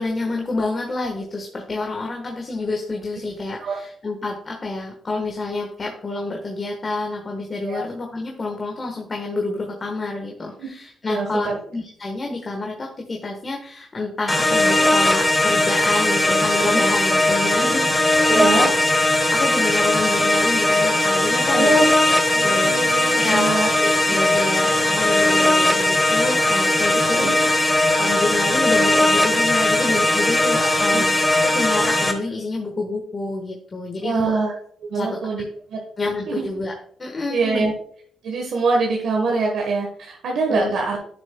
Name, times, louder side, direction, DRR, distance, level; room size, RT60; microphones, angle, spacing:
voice 1, 0.0-18.7 19.3-21.8 22.4-34.4 34.9-35.2 36.0-36.7 37.0-37.6 40.5-40.8, left 2 dB, 35° left, 1 dB, 1.3 m, -28 dB
voice 2, 11.1-11.6 18.3-18.7 21.5-21.8 22.3-23.7 24.1-24.2 26.9-27.3 30.9-31.0 34.0-34.5 34.9-35.4 35.7-35.8 36.3-36.5 37.3-37.7 38.2-41.0, right 3 dB, 75° right, 0 dB, 1.3 m, -23 dB
sound 1, 14.3-32.1, left 1 dB, 15° left, 1.2 m, -19 dB
10.5 x 6.6 x 2.3 m, 0.63 s
cardioid pair, 75°, 0 cm